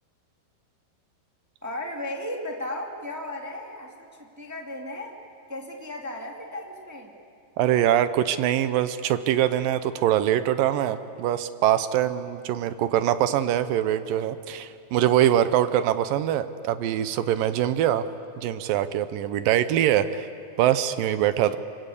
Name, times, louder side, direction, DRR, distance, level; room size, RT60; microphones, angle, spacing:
voice 1, 1.6-5.2 5.5-7.1, left 1 dB, 10° right, 1 dB, 0.9 m, -35 dB
voice 2, 7.6-18.1 18.4-20.3 20.6-21.6, right 11 dB, 75° right, 12 dB, 2.2 m, -23 dB
26.0 x 25.0 x 8.3 m, 2.4 s
omnidirectional pair, 4.6 m